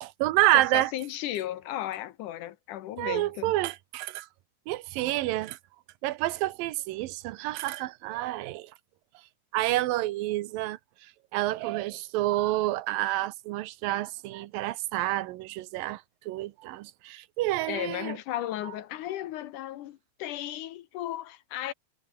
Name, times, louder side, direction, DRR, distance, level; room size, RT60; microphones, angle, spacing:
voice 1, 0.0-0.9 3.0-4.3 4.7-5.6 6.0-8.7 9.5-10.8 11.3-16.0 16.3-18.1, right 16 dB, 80° right, 2.6 m, -28 dB
voice 2, 0.5-3.5 17.7-21.7, left 13 dB, 70° left, 2.2 m, -35 dB
omnidirectional pair, 4.1 m